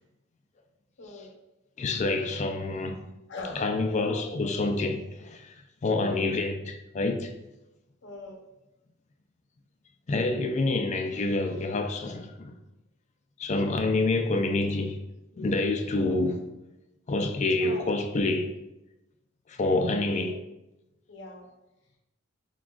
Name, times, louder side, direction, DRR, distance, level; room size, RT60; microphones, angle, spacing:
voice 1, 1.0-1.3 3.3-3.6 4.0-4.8 5.9-6.2 8.0-8.4 15.9-16.2 17.6-17.9 20.0-20.3 21.1-21.4, left 2 dB, 65° left, 0.8 m, -41 dB
voice 2, 1.8-3.0 3.6-5.5 5.8-7.3 10.1-12.6 13.4-15.0 15.4-16.4 17.1-18.5 19.5-20.3, left 2 dB, 35° left, 0.4 m, -27 dB
5.9 x 2.3 x 2.3 m
head